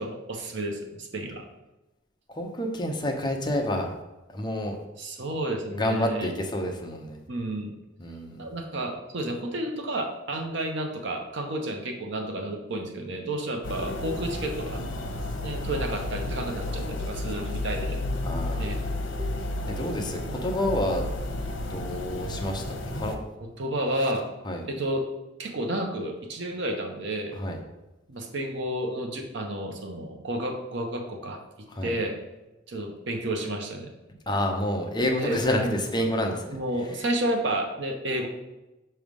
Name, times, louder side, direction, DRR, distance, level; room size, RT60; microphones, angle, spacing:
voice 1, 0.0-1.4 5.0-6.3 7.3-7.7 8.4-14.8 15.4-18.0 18.6-18.8 20.3-20.5 23.6-24.3 24.7-25.1 25.4-27.4 28.1-31.4 31.8-32.2 32.7-33.9 35.2-35.8 36.5-38.3, right 1 dB, 70° right, 3 dB, 0.9 m, -31 dB
voice 2, 2.3-3.9 4.3-4.8 5.7-7.2 8.0-8.4 18.2-18.9 19.7-21.1 21.6-23.1 24.4-24.6 27.3-27.6 31.7-31.9 34.3-36.5, left 1 dB, 25° left, 2 dB, 0.8 m, -29 dB
sound 1, 13.6-23.2, left 1 dB, 85° left, 0.8 m, -32 dB
6.2 x 3.3 x 5.2 m, 1.0 s
head